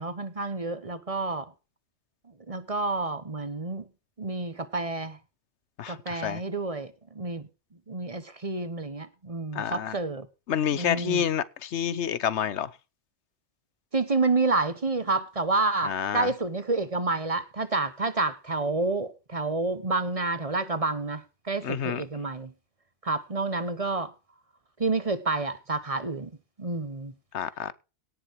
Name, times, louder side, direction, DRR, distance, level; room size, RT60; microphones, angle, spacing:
voice 1, 0.0-1.5 2.5-3.9 4.2-5.2 5.9-7.5 7.9-10.3 10.7-11.2 13.9-22.5 23.0-24.1 24.8-26.3 26.6-27.1, right 3 dB, 35° right, 1.2 m, -29 dB
voice 2, 5.8-6.4 9.5-9.9 10.5-12.7 15.8-16.3 21.6-22.0 27.3-27.7, left 9 dB, 85° left, 1.1 m, -28 dB
17.5 x 6.8 x 4.7 m
omnidirectional pair, 1.1 m